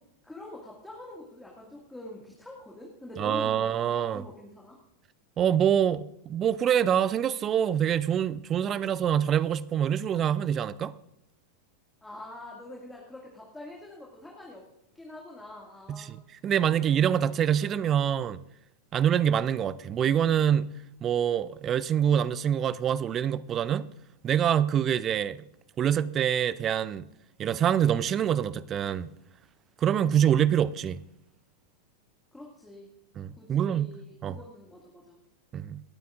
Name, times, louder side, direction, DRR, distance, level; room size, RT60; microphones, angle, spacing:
voice 1, 0.2-3.8 4.1-4.8 12.0-14.6 14.9-16.2 16.7-16.8 17.3-17.7 32.3-32.9 33.4-35.2, left 1 dB, 5° left, 2.2 m, -45 dB
voice 2, 3.2-4.2 5.4-10.9 15.9-16.2 16.4-18.4 18.9-20.7 21.0-23.9 24.2-25.4 25.8-27.0 27.4-29.1 29.8-31.0 33.2-33.9 34.2-34.4 35.5-35.8, right 9 dB, 30° right, 0.5 m, -25 dB
27.0 x 9.2 x 2.6 m
figure-of-eight pair, 90°, 0 cm